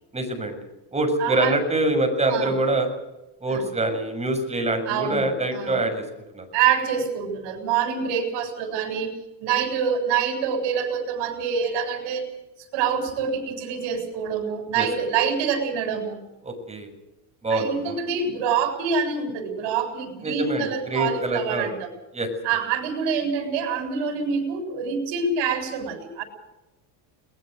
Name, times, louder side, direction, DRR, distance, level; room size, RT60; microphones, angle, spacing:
voice 1, 0.1-0.6 0.9-2.9 3.4-6.0 6.3-6.5 14.7-14.9 16.4-16.9 17.4-18.0 20.2-21.7 22.1-22.3, right 2 dB, 15° right, 5 dB, 6.9 m, -25 dB
voice 2, 1.2-1.5 2.3-2.5 3.5-3.7 4.9-5.8 6.5-12.2 12.7-16.2 17.5-21.9 22.4-26.2, right 6 dB, 70° right, 6 dB, 7.5 m, -26 dB
22.5 x 20.5 x 6.6 m, 0.96 s
supercardioid pair, 115°, 45 cm